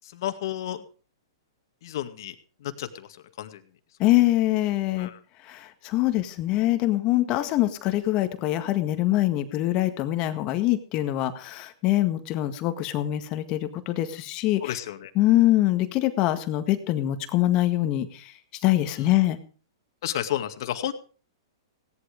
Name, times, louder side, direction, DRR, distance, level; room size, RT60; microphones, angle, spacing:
voice 1, 0.0-0.8 1.8-2.3 2.6-3.1 3.4-3.6 5.0-5.2 14.6-15.1 20.0-20.9, left 12 dB, 60° left, 8 dB, 2.1 m, -31 dB
voice 2, 4.0-5.1 5.4-14.8 15.2-18.3 18.6-19.4, left 15 dB, 35° left, 9 dB, 1.8 m, -24 dB
17.0 x 12.0 x 5.1 m, 0.39 s
hypercardioid pair, 135°, 2 cm